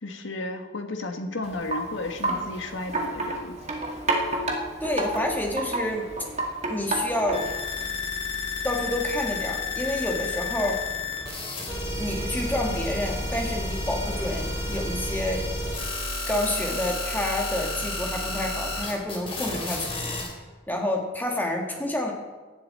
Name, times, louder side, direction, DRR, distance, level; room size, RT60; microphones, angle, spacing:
voice 1, 0.0-3.6, left 2 dB, 70° left, 5 dB, 1.6 m, -33 dB
Wind chime, 1.4-7.6, right 1 dB, 35° right, 1.9 m, -30 dB
voice 2, 4.8-6.1 6.7-7.5 8.6-10.8 12.0-15.5 16.3-20.2 20.7-22.1, left 1 dB, 10° left, 1 dB, 1.9 m, -28 dB
sound 1, 7.3-20.3, left 2 dB, 30° left, 3.0 m, -31 dB
17.0 x 11.5 x 4.3 m, 1.3 s
head